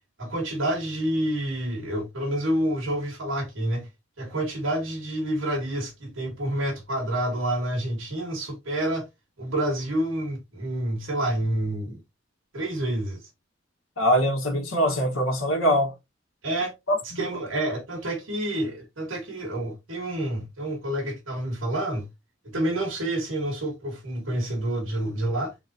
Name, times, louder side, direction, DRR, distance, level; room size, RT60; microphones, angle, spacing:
voice 1, 0.2-3.9 4.2-9.1 9.4-12.0 12.5-13.2 16.4-16.7 17.2-22.1 22.4-25.5, right 1 dB, 80° right, 1.9 m, -28 dB
voice 2, 14.0-15.9 16.9-17.0, equal, 90° left, 1.3 m, -22 dB
4.1 x 3.8 x 2.7 m
head